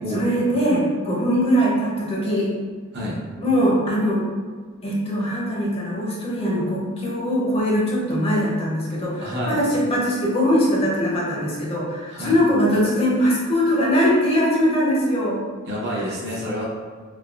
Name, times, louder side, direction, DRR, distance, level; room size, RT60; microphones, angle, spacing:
voice 1, 0.1-2.5 3.4-4.3 4.8-15.4, equal, 30° left, -4 dB, 0.6 m, -21 dB
voice 2, 9.2-9.6 12.1-12.3 15.7-16.6, equal, 55° right, -4 dB, 0.7 m, -28 dB
3.2 x 2.1 x 2.3 m, 1.6 s
head